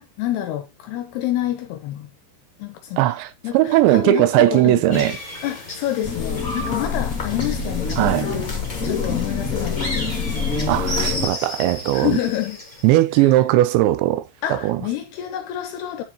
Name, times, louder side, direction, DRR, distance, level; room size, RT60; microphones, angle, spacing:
voice 1, 0.0-2.1 2.6-3.1 3.4-5.1 5.4-8.3 8.8-10.2 11.9-12.6 13.2-13.3 14.4-16.0, left 13 dB, 80° left, 2.5 m, -28 dB
voice 2, 3.0-5.2 8.0-8.3 10.7-12.2 12.8-14.8, right 15 dB, 80° right, 2.8 m, -18 dB
sound 1, 4.9-12.9, left 1 dB, 15° left, 3.0 m, -34 dB
sound 2, 6.0-11.3, left 5 dB, 35° left, 1.3 m, -25 dB
9.5 x 7.0 x 2.9 m
omnidirectional pair, 5.4 m